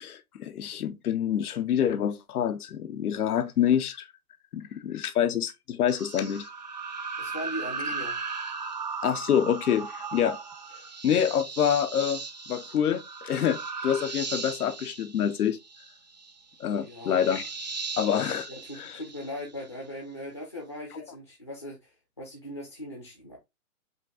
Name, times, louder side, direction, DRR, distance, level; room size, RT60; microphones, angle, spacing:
voice 1, 0.0-4.1 4.5-6.5 9.0-10.4 11.0-12.2 12.5-15.6 16.6-17.4 18.0-18.5 18.8-19.0, left 9 dB, 80° left, 0.7 m, -26 dB
sound 1, 5.9-19.7, right 4 dB, 30° right, 0.5 m, -37 dB
voice 2, 7.2-8.2 16.7-17.5 18.5-23.4, equal, 20° left, 0.5 m, -39 dB
5.1 x 2.4 x 3.6 m
hypercardioid pair, 165°, 44 cm